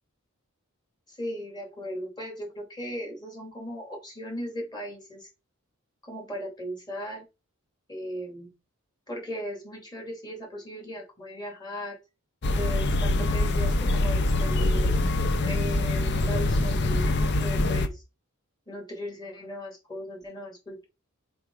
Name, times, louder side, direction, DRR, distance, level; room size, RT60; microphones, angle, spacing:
voice 1, 1.2-5.3 6.1-7.2 7.9-8.5 9.1-12.0 12.5-14.9 15.4-18.0 18.7-20.8, equal, 20° left, 1 dB, 2.6 m, -37 dB
sound 1, 12.4-17.9, left 2 dB, 55° left, 0.7 m, -24 dB
5.1 x 4.8 x 4.7 m, 0.26 s
head